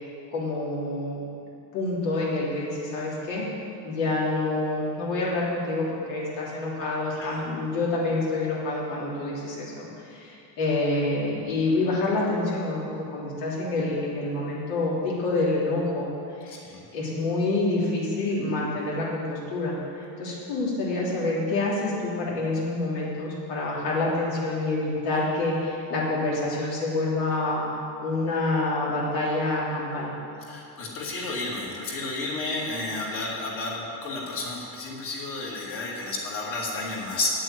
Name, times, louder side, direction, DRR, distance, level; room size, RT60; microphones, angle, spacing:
voice 1, 0.3-1.2 1.7-3.5 3.8-16.1 16.4-16.6 16.9-27.6 28.0-30.1, left 2 dB, 85° left, -6 dB, 3.2 m, -27 dB
voice 2, 16.5-16.8 30.4-37.3, left 3 dB, 50° left, -3 dB, 2.6 m, -32 dB
9.0 x 7.6 x 8.9 m, 2.7 s
cardioid pair, 180°, 42 cm